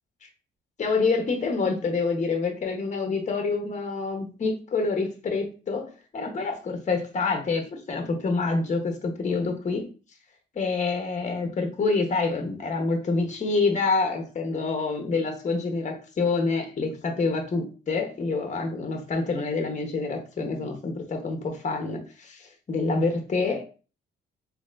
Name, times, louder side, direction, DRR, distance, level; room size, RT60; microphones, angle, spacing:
voice 1, 0.8-9.9 10.5-23.6, left 3 dB, 35° left, 4 dB, 1.0 m, -27 dB
4.2 x 2.8 x 2.5 m, 0.35 s
cardioid pair, 90°, 20 cm